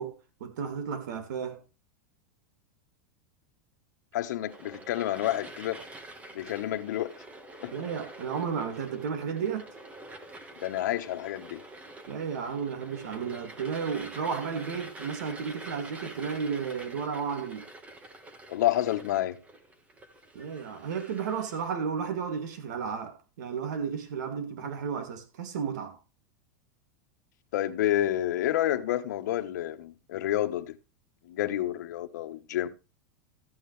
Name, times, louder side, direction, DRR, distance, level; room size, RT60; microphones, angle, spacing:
voice 1, 0.0-1.6 7.7-9.7 12.1-17.7 20.3-26.0, right 6 dB, 75° right, 2.5 m, -33 dB
voice 2, 4.1-5.8 6.3-7.1 7.6-7.7 10.6-11.6 18.5-19.4 27.5-30.8 31.3-32.7, left 13 dB, 75° left, 1.3 m, -29 dB
sound 1, 4.4-21.7, right 2 dB, 15° right, 1.5 m, -47 dB
13.5 x 9.3 x 3.3 m
supercardioid pair, 150°, 10 cm